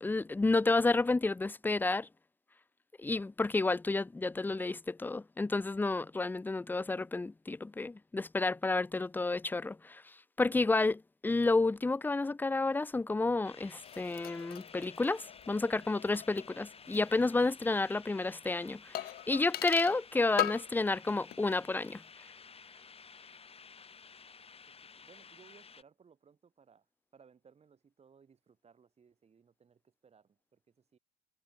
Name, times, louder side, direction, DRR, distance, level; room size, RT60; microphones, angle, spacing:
voice 1, 0.0-2.1 3.0-10.0 10.4-22.0, left 3 dB, 10° left, 0.5 m, -31 dB
sound 1, 13.4-25.8, left 5 dB, 30° left, 7.4 m, -54 dB
sound 2, 13.8-17.2 17.4-17.5 18.9-20.0 20.4-20.8 21.1-21.6 21.9-22.0, left 13 dB, 55° left, 0.8 m, -40 dB
voice 2, 24.0-26.9 27.1-31.0, right 6 dB, 35° right, 7.9 m, -63 dB
cardioid pair, 95°, 19 cm